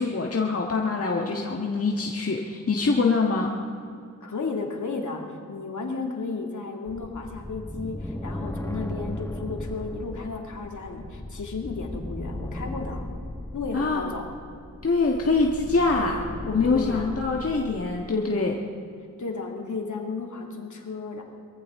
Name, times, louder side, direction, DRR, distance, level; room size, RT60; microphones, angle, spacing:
voice 1, 0.0-3.5 13.7-14.0 14.8-18.6, left 3 dB, 45° left, -1 dB, 1.7 m, -24 dB
voice 2, 4.2-13.1 13.5-14.3 16.6-17.1 19.2-21.2, left 4 dB, 60° left, 2 dB, 2.5 m, -33 dB
sound 1, 6.9-18.1, left 1 dB, 10° left, 0.9 m, -37 dB
23.0 x 14.5 x 3.7 m, 2.4 s
cardioid pair, 50°, 34 cm